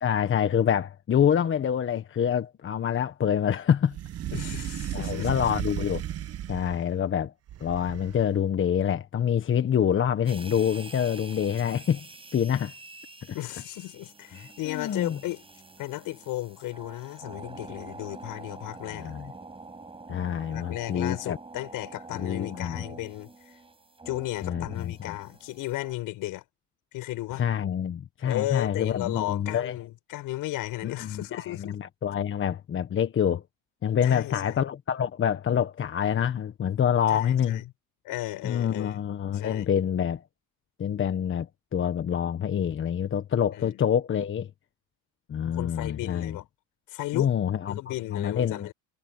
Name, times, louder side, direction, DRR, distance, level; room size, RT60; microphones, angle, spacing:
voice 1, 0.0-4.0 4.9-6.0 6.5-7.3 7.6-12.0 12.3-12.7 13.3-13.4 14.7-15.2 18.9-19.3 20.1-21.4 22.1-22.8 24.4-25.2 27.3-29.8 30.8-33.4 33.8-37.6 38.4-40.2 40.8-44.5 45.3-46.4 47.1-47.8 48.1-48.7, left 8 dB, 35° left, 1.3 m, -26 dB
sound 1, 3.9-6.9 7.5-8.4, right 11 dB, 45° right, 1.2 m, -34 dB
voice 2, 4.3-5.4 13.3-15.4 15.8-19.1 20.5-23.3 24.1-26.4 26.9-27.4 28.2-31.8 34.0-34.5 37.1-37.6 38.0-39.0 39.3-39.7 43.6-43.8 45.5-46.4 46.9-47.4 47.7-48.7, left 17 dB, 70° left, 7.4 m, -34 dB
sound 2, 10.3-25.9, right 3 dB, 15° right, 5.7 m, -46 dB
cardioid pair, 110°, 34 cm